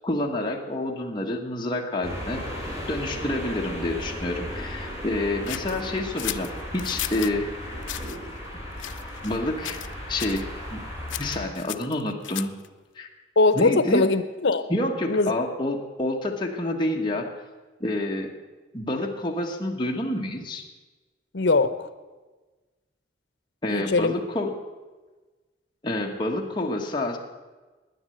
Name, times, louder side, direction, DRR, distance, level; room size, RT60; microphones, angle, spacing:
voice 1, 0.0-2.4 2.9-7.8 8.5-8.6 9.2-9.8 10.1-10.4 10.7-10.8 11.2-12.5 12.9-13.1 13.5-14.0 14.7-17.3 17.8-18.3 18.7-20.6 23.6-24.5 25.8-27.2, left 1 dB, 25° left, 0 dB, 1.3 m, -28 dB
sound 1, 2.0-11.5, equal, 15° right, 3.3 m, -35 dB
sound 2, 5.5-7.4 7.8-8.2 8.8-9.4 9.6-9.9 10.2-10.4 11.1-12.7, left 14 dB, 90° left, 0.5 m, -35 dB
voice 2, 13.4-14.6 15.1-15.3 21.3-21.9 23.7-24.2, left 3 dB, 70° left, 12 dB, 0.8 m, -21 dB
11.0 x 9.8 x 7.8 m, 1.2 s
head